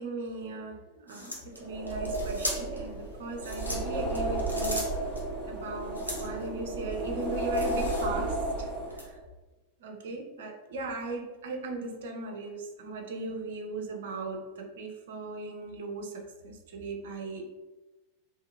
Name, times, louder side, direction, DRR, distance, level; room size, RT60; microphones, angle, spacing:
voice 1, 0.0-5.0 5.5-9.2 9.8-17.5, right 3 dB, 55° right, 2 dB, 0.5 m, -38 dB
sound 1, 1.1-2.9 3.3-5.2 5.9-6.4 6.9-8.3 8.9-9.1, equal, 90° left, 0.6 m, -38 dB
sound 2, 1.6-9.1, right 1 dB, 5° right, 1.0 m, -33 dB
2.7 x 2.6 x 2.4 m, 1.1 s
figure-of-eight pair, 90°, 0 cm